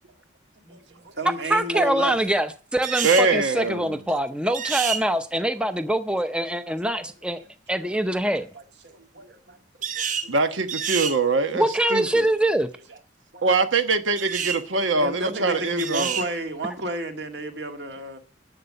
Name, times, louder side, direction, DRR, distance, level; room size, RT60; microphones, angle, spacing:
voice 1, 0.7-2.3 6.3-7.5 7.9-8.0 8.5-10.3 12.9-13.0 13.3-13.4 14.9-18.2, right 1 dB, 60° right, 1.9 m, -33 dB
voice 2, 1.5-7.4 7.7-8.5 11.5-12.7, right 1 dB, 5° right, 0.6 m, -24 dB
sound 1, 2.8-3.3 4.5-5.0 9.8-10.3 10.7-11.2 14.2-14.6 15.8-16.3, right 7 dB, 40° right, 1.1 m, -28 dB
voice 3, 3.0-4.0 10.3-11.6 11.9-12.3 13.4-16.2, right 3 dB, 85° right, 1.2 m, -23 dB
11.0 x 7.8 x 6.6 m
head